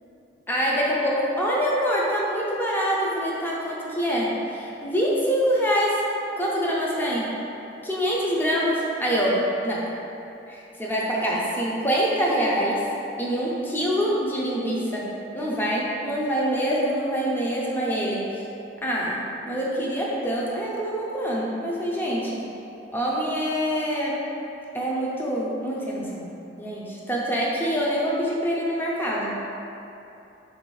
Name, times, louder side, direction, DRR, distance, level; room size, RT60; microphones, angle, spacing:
voice 1, 0.5-6.0 6.4-7.3 7.8-9.9 10.5-12.8 13.2-18.3 18.8-19.2 19.5-22.4 22.9-24.2 24.7-26.3 26.6-29.4, equal, 10° left, -5 dB, 0.5 m, -25 dB
4.6 x 2.6 x 3.1 m, 2.9 s
head